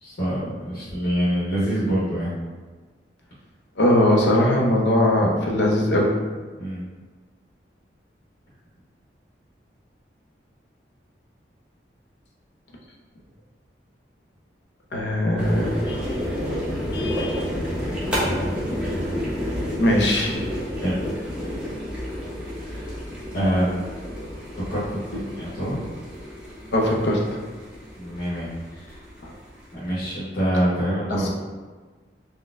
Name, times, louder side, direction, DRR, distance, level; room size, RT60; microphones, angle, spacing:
voice 1, 0.0-2.3 6.6-6.9 17.7-18.7 19.1-19.2 20.8-21.0 22.7-22.8 23.3-23.9 24.7-25.0 25.4-25.8 28.0-28.9 29.7-31.3, equal, 55° left, -9 dB, 0.9 m, -26 dB
voice 2, 3.8-6.1 14.9-16.0 16.9-17.4 19.8-20.4 25.1-25.2 26.7-27.3 29.2-29.3 31.1-31.3, left 1 dB, 80° left, 0 dB, 0.6 m, -20 dB
sound 1, 15.4-29.9, equal, 5° right, 0.7 m, -30 dB
4.0 x 2.1 x 2.4 m, 1.4 s
head